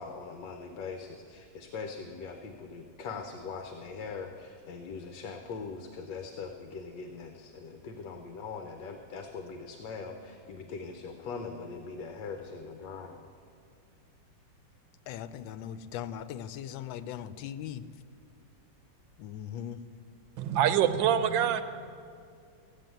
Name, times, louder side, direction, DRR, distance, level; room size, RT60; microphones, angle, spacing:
voice 1, 0.0-13.2, left 5 dB, 75° left, 5 dB, 1.5 m, -41 dB
voice 2, 15.1-17.8 19.2-19.8, left 10 dB, 90° left, 13 dB, 1.4 m, -39 dB
voice 3, 20.4-21.6, right 9 dB, 85° right, 11 dB, 1.5 m, -25 dB
15.5 x 7.2 x 9.1 m, 2.3 s
omnidirectional pair, 2.0 m